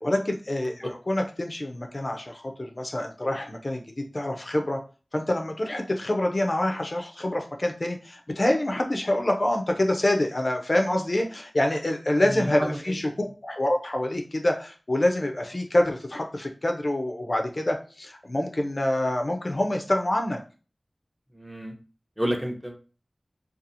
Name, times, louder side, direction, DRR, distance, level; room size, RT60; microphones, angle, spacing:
voice 1, 0.0-4.8 5.1-20.4, left 1 dB, 45° left, 3 dB, 0.4 m, -26 dB
voice 2, 12.2-13.0 21.3-21.7 22.2-22.8, equal, 5° right, 2 dB, 0.6 m, -30 dB
2.7 x 2.3 x 2.5 m, 0.35 s
wide cardioid pair, 65°, 0 cm